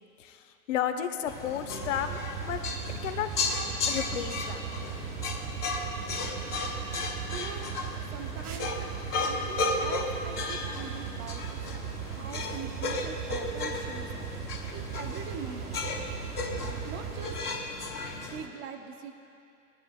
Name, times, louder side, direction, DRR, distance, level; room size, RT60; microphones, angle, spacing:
voice 1, 0.2-2.6 3.0-3.3 3.9-4.7, left 9 dB, 50° left, 8 dB, 1.0 m, -32 dB
sound 1, 1.3-18.5, left 3 dB, 75° left, 1.9 m, -35 dB
sound 2, 1.8-17.4, right 8 dB, 70° right, 1.2 m, -38 dB
voice 2, 7.3-7.7 8.1-8.9 9.2-11.6 12.1-14.3 14.7-15.8 16.9-17.4 18.1-19.1, right 7 dB, 25° right, 6 dB, 0.8 m, -42 dB
20.0 x 12.0 x 2.2 m, 2.6 s
figure-of-eight pair, 115°, 47 cm